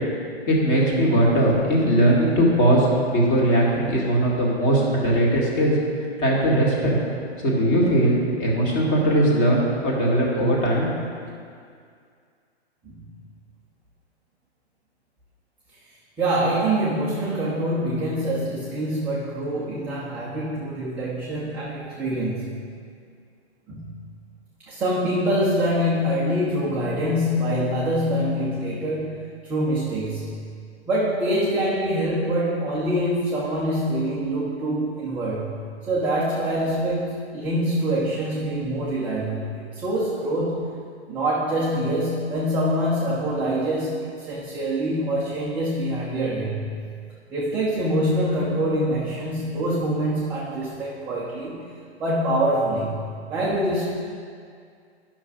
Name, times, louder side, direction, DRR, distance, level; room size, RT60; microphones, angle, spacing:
voice 1, 0.5-5.8 6.2-6.9 7.4-10.9, right 1 dB, 30° left, -3 dB, 2.1 m, -20 dB
voice 2, 16.2-22.5 23.7-24.0 24.7-30.4 30.9-40.8 41.1-46.8 47.3-51.7 52.0-53.8, right 1 dB, 5° right, -7 dB, 0.4 m, -25 dB
10.0 x 6.0 x 5.3 m, 2.2 s
hypercardioid pair, 145°, 33 cm